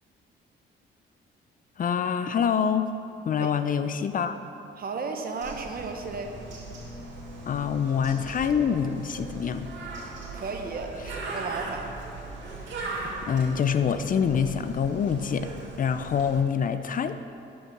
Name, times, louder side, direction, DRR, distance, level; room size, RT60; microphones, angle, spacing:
voice 1, 1.8-2.9 3.3-4.4 7.5-9.7 13.3-15.5 15.8-17.2, left 7 dB, 45° left, 10 dB, 0.5 m, -25 dB
voice 2, 4.8-6.4 10.3-11.9, right 4 dB, 50° right, 4 dB, 1.1 m, -34 dB
Bird, 5.4-16.4, right 2 dB, 70° right, 2.2 m, -39 dB
11.5 x 5.4 x 5.9 m, 2.7 s
cardioid pair, 90°, 20 cm